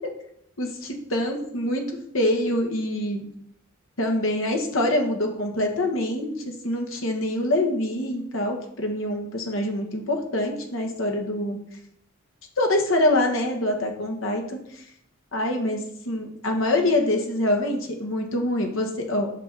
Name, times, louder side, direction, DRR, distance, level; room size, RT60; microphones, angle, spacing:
voice 1, 0.6-1.8 2.1-3.2 4.0-6.3 6.6-11.6 12.6-14.6 15.3-19.3, left 1 dB, 70° left, 3 dB, 1.6 m, -25 dB
9.1 x 6.0 x 4.2 m, 0.72 s
head